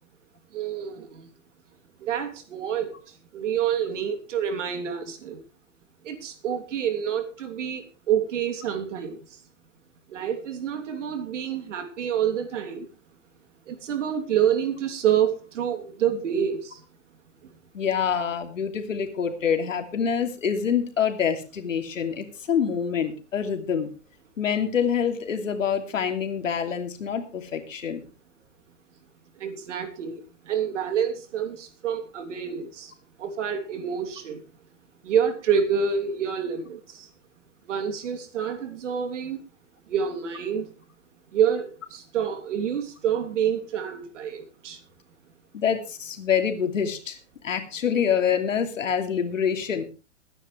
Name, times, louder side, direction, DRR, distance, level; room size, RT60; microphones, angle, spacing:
voice 1, 0.5-1.3 2.0-3.0 3.3-5.4 6.0-9.2 10.1-12.9 13.7-16.8 29.4-30.2 30.5-32.9 33.2-34.4 35.0-37.1 37.7-39.4 39.9-40.7 41.3-44.8, right 8 dB, 70° right, 6 dB, 3.2 m, -27 dB
voice 2, 17.7-23.9 24.4-28.0 45.5-47.2 47.4-49.8, left 7 dB, 80° left, 5 dB, 2.8 m, -26 dB
21.5 x 10.0 x 3.3 m, 0.31 s
hypercardioid pair, 120°, 38 cm